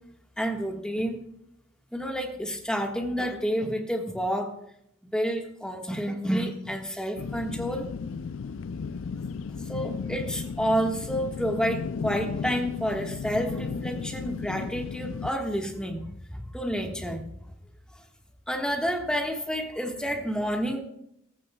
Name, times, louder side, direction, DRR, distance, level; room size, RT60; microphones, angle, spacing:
voice 1, 0.4-1.2 1.9-4.5 5.1-7.9 9.7-17.2 18.5-20.8, equal, 5° left, 2 dB, 1.5 m, -29 dB
sound 1, 7.2-15.3, left 5 dB, 75° left, 0.4 m, -34 dB
16.0 x 15.0 x 2.3 m, 0.74 s
head